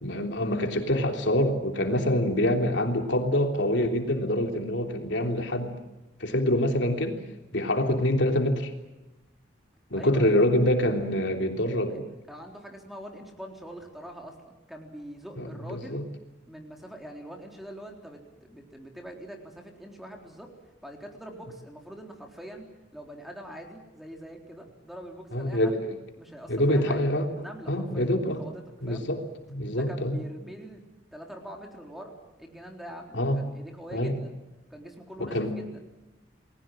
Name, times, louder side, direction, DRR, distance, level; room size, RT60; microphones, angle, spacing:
voice 1, 0.0-5.8 6.2-7.2 7.5-8.7 9.9-12.1 15.4-16.0 25.3-25.8 26.5-27.3 27.7-28.4 28.8-29.2 29.5-30.2 33.1-33.4 33.9-34.1 35.2-35.6, left 1 dB, 75° left, 4 dB, 3.4 m, -25 dB
voice 2, 9.9-10.5 11.9-12.0 12.3-16.0 16.5-20.5 20.8-22.6 22.9-25.8 26.2-27.1 27.4-29.1 29.7-30.8 31.1-34.3 34.7-35.8, right 1 dB, ahead, 1 dB, 3.8 m, -44 dB
29.5 x 21.0 x 7.8 m, 1.0 s
head